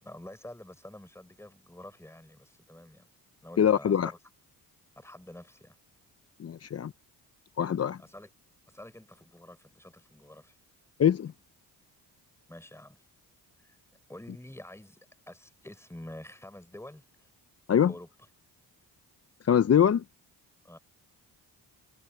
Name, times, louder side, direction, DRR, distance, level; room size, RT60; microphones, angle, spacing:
voice 1, 0.0-3.1 3.4-4.2 5.0-5.8 8.0-8.3 8.7-10.6 12.5-13.0 13.6-13.8 14.1-17.3 17.8-18.1 20.6-20.8, left 1 dB, 5° left, 5.4 m, -48 dB
voice 2, 3.6-4.1 6.4-6.9 7.6-8.0 11.0-11.3 17.7-17.9 19.4-20.0, left 9 dB, 40° left, 0.6 m, -23 dB
cardioid pair, 70°, 41 cm